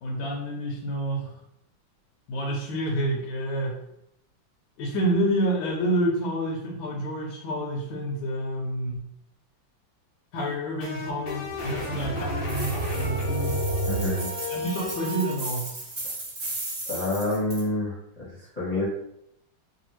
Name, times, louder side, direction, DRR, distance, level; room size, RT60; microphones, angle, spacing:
voice 1, 0.0-1.4 2.3-3.8 4.8-9.1 10.3-13.6 14.5-15.8, right 1 dB, 75° left, -1 dB, 1.3 m, -28 dB
sound 1, 10.4-15.3, equal, 55° left, 0.4 m, -30 dB
sound 2, 12.5-17.6, right 2 dB, 35° right, 0.9 m, -36 dB
voice 2, 13.8-14.3 16.9-18.9, left 2 dB, 30° left, -9 dB, 0.8 m, -28 dB
3.3 x 2.3 x 3.0 m, 0.77 s
omnidirectional pair, 2.1 m